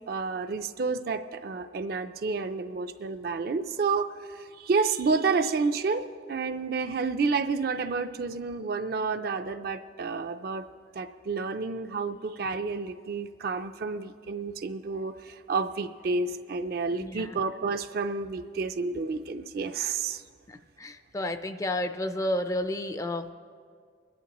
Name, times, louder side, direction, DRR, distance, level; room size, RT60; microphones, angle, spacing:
voice 1, 0.1-10.7 10.9-20.2, right 4 dB, 50° right, 9 dB, 0.4 m, -30 dB
voice 2, 16.9-17.4 20.5-23.3, left 1 dB, 15° left, 9 dB, 0.4 m, -31 dB
24.0 x 11.0 x 3.0 m, 2.1 s
head